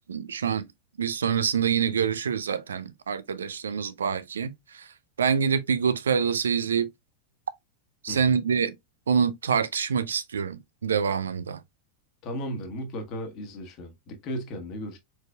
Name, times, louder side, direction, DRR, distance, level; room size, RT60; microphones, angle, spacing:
voice 1, 0.1-0.7 1.0-4.9 5.2-6.9 8.0-8.8 9.1-11.6, right 6 dB, 70° right, 0.5 m, -26 dB
voice 2, 12.2-15.0, equal, 40° left, 1.3 m, -35 dB
4.6 x 4.4 x 2.3 m
figure-of-eight pair, 90°, 0 cm